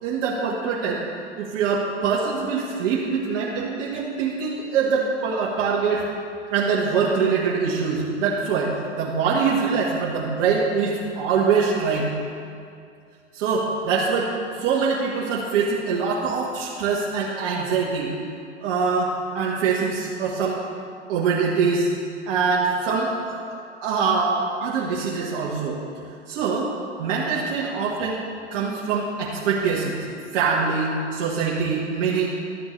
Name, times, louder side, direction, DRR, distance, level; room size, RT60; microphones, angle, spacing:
voice 1, 0.0-1.0 1.4-6.0 6.5-12.1 13.3-18.1 18.6-20.6 21.1-21.9 22.3-23.4 23.8-25.8 26.3-26.7 27.0-28.2 28.5-30.0 30.3-32.3, right 5 dB, 55° right, -6 dB, 1.7 m, -24 dB
12.5 x 7.8 x 3.3 m, 2.4 s
hypercardioid pair, 110°, 36 cm